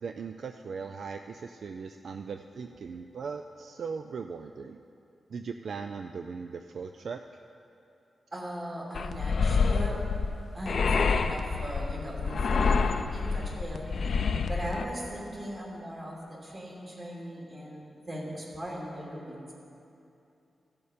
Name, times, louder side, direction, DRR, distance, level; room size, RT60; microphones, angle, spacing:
voice 1, 0.0-4.8 5.3-7.4, right 5 dB, 70° right, 6 dB, 0.3 m, -39 dB
voice 2, 8.3-10.0 10.5-13.9 14.4-19.5, equal, 35° right, -4 dB, 2.7 m, -39 dB
sound 1, 8.9-14.8, left 5 dB, 65° left, 0.5 m, -27 dB
15.5 x 7.0 x 5.0 m, 2.7 s
wide cardioid pair, 110°, 0 cm